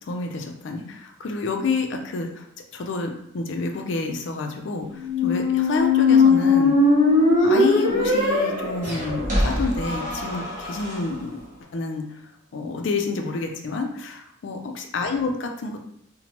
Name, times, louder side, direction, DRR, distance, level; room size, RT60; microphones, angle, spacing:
voice 1, 0.0-2.5 2.7-6.8 7.4-11.4 11.7-12.2 12.5-15.8, left 3 dB, 60° left, 3 dB, 0.4 m, -28 dB
Squeak, 5.0-11.0, left 3 dB, 35° right, 0.6 m, -20 dB
sound 1, 8.8-9.8, equal, 10° right, 1.2 m, -35 dB
2.8 x 2.1 x 2.9 m, 0.74 s
head